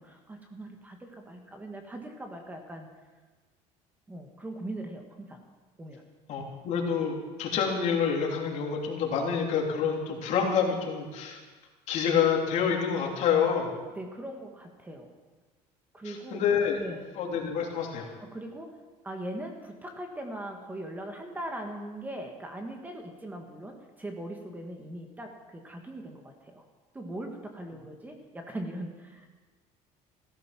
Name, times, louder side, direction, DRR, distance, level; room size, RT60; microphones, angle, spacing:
voice 1, 0.0-2.9 4.1-5.4 5.8-6.0 13.9-15.1 15.9-16.4 16.8-17.1 18.2-26.7 26.9-29.3, right 1 dB, 10° right, 3 dB, 1.6 m, -40 dB
voice 2, 6.3-11.4 11.9-13.7 16.0-16.8 17.2-18.1, left 6 dB, 55° left, 0 dB, 3.2 m, -27 dB
16.0 x 13.5 x 6.0 m, 1.3 s
cardioid pair, 140°, 14 cm